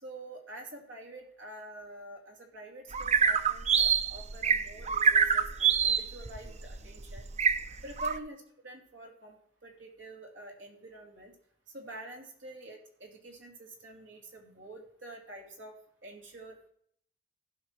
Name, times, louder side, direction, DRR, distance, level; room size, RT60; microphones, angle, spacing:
voice 1, 0.0-7.2 7.8-9.4 9.6-11.3 11.7-15.7 16.0-16.7, right 1 dB, 90° right, 2 dB, 2.8 m, -47 dB
sound 1, 2.9-8.2, right 6 dB, 35° right, 0.6 m, -26 dB
16.0 x 5.7 x 4.6 m, 0.66 s
head